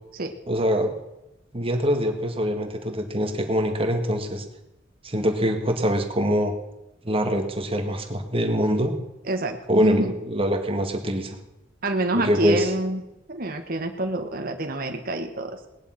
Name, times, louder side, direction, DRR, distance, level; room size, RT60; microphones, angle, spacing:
voice 1, 0.5-0.9 1.5-4.5 5.0-6.5 7.0-9.0 9.7-11.4 12.1-12.7, equal, 30° right, 5 dB, 2.0 m, -24 dB
voice 2, 9.2-10.1 11.8-13.0 13.3-15.6, right 2 dB, 50° right, 4 dB, 1.5 m, -27 dB
19.0 x 10.5 x 5.9 m, 0.95 s
head